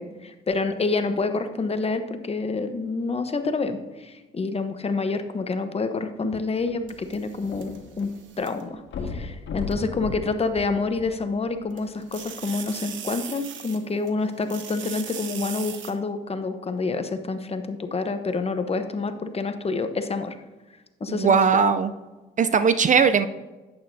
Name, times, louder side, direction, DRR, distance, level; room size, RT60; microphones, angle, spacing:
voice 1, 0.0-20.4 21.0-21.4, left 3 dB, 30° left, 8 dB, 0.9 m, -28 dB
sound 1, 6.6-8.1 8.4-8.5 8.9-11.4 12.1-12.2, left 4 dB, 65° left, 1.8 m, -35 dB
sound 2, 6.9-8.6 9.7-9.8 11.7-14.1 14.4-15.9, right 8 dB, 75° right, 1.1 m, -38 dB
voice 2, 21.1-21.9 22.4-23.3, right 6 dB, 40° right, 11 dB, 0.5 m, -19 dB
11.0 x 8.8 x 2.7 m, 1.2 s
cardioid pair, 90°, 20 cm